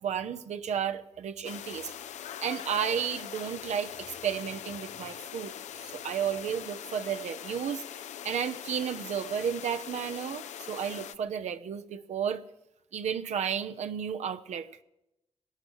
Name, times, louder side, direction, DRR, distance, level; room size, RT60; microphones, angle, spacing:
voice 1, 0.0-1.9 2.4-12.4 12.9-14.7, right 8 dB, 75° right, 0.7 m, -33 dB
sound 1, 1.4-11.2, left 10 dB, 85° left, 0.5 m, -42 dB
18.0 x 11.0 x 6.4 m
supercardioid pair, 50°, 12 cm